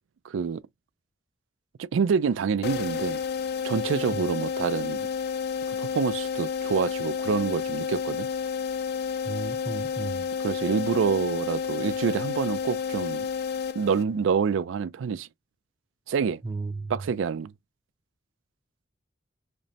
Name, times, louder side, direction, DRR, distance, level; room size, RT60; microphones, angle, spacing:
voice 1, 0.2-0.6 1.8-3.2 3.6-5.1 5.7-8.3 10.4-13.3 13.7-15.3 16.1-16.4 16.9-17.5, right 6 dB, 80° right, 0.4 m, -27 dB
sound 1, 2.6-14.3, left 6 dB, 55° left, 0.4 m, -30 dB
voice 2, 9.2-10.3 16.4-17.0, right 3 dB, 25° right, 0.5 m, -34 dB
5.1 x 2.1 x 2.7 m
head